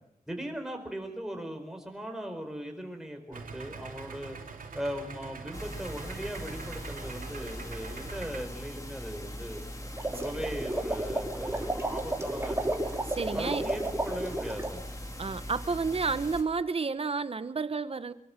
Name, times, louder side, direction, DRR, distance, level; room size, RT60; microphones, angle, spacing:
voice 1, 0.3-4.4 4.7-9.6 10.1-12.8 13.3-14.8, equal, 5° right, 4.6 m, -38 dB
Idling, 3.3-8.4, right 4 dB, 85° right, 3.1 m, -43 dB
sound 1, 5.5-16.4, equal, 25° left, 3.1 m, -41 dB
sound 2, 9.8-14.8, right 1 dB, 20° right, 2.6 m, -32 dB
voice 2, 13.1-13.6 15.2-18.1, right 4 dB, 45° right, 1.1 m, -31 dB
24.5 x 22.5 x 5.9 m
wide cardioid pair, 135°, 14 cm